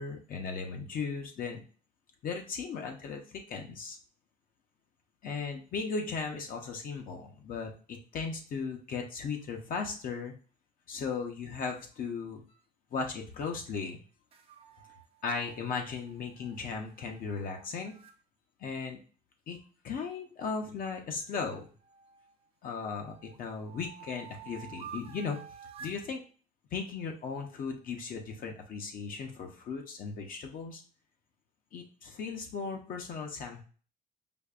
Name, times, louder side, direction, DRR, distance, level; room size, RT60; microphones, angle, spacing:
voice 1, 0.0-1.6 2.2-4.0 5.2-10.3 10.9-12.4 12.9-14.0 15.2-17.9 18.6-19.0 19.5-19.6 19.8-21.7 22.6-25.4 25.8-26.2 26.7-30.8 31.7-33.6, left 5 dB, 55° left, 3 dB, 0.7 m, -37 dB
sound 1, 14.3-18.2 21.1-22.3 22.8-26.0, right 7 dB, 35° right, 0.5 m, -51 dB
5.1 x 2.1 x 2.4 m, 0.39 s
cardioid pair, 110°, 17 cm